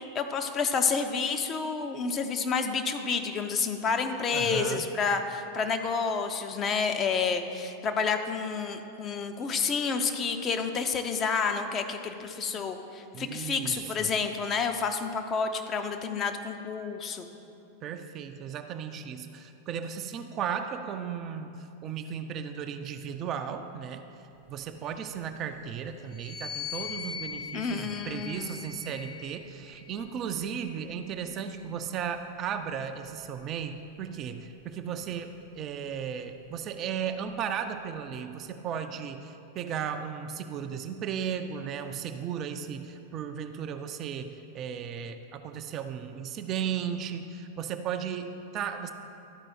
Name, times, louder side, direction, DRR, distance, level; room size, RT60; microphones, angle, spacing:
voice 1, 0.1-17.3 27.5-28.7, left 5 dB, 25° left, 6 dB, 0.6 m, -29 dB
voice 2, 4.3-4.9 13.1-14.1 17.8-24.0 24.5-48.9, right 7 dB, 35° right, 7 dB, 0.4 m, -35 dB
sound 1, 26.1-29.7 30.5-32.1, left 7 dB, 55° left, 2.1 m, -41 dB
12.0 x 4.8 x 4.4 m, 2.7 s
figure-of-eight pair, 90°, 0 cm